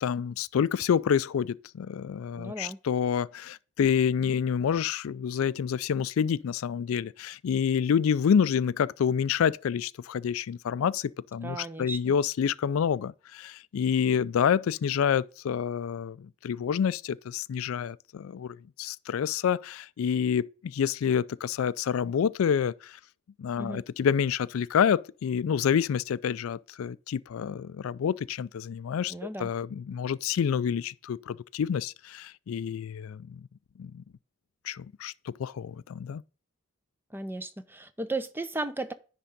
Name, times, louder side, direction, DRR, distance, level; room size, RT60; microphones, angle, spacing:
voice 1, 0.0-23.0 23.4-29.1 29.4-33.4 33.8-34.0 34.6-35.1 35.4-36.2, left 7 dB, 85° left, 0.4 m, -28 dB
voice 2, 2.4-2.8 11.4-12.1 23.6-23.8 29.1-29.5 37.1-38.9, right 2 dB, 10° right, 0.5 m, -35 dB
10.0 x 3.7 x 5.2 m
head